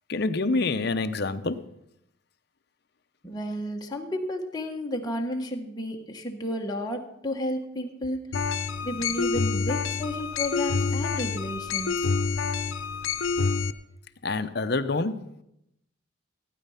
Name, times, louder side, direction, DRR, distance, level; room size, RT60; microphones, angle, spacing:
voice 1, 0.1-1.6 14.2-15.2, left 3 dB, 55° left, 0.7 m, -27 dB
voice 2, 3.2-8.2 8.8-12.1, left 1 dB, 20° left, 1.4 m, -32 dB
sound 1, 8.3-13.7, left 5 dB, 90° left, 0.7 m, -27 dB
16.0 x 9.3 x 5.7 m
head